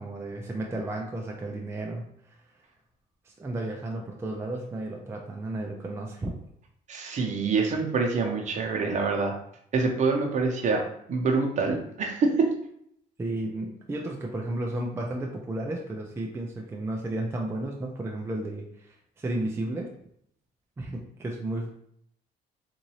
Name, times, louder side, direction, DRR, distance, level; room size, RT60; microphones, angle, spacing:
voice 1, 0.0-2.4 3.2-6.3 13.2-19.9 20.8-21.8, right 2 dB, 15° right, 0 dB, 0.5 m, -33 dB
voice 2, 6.9-9.3 9.7-10.8 11.1-12.5, right 4 dB, 45° right, 1 dB, 0.9 m, -25 dB
3.9 x 2.6 x 3.0 m, 0.71 s
cardioid pair, 110°, 17 cm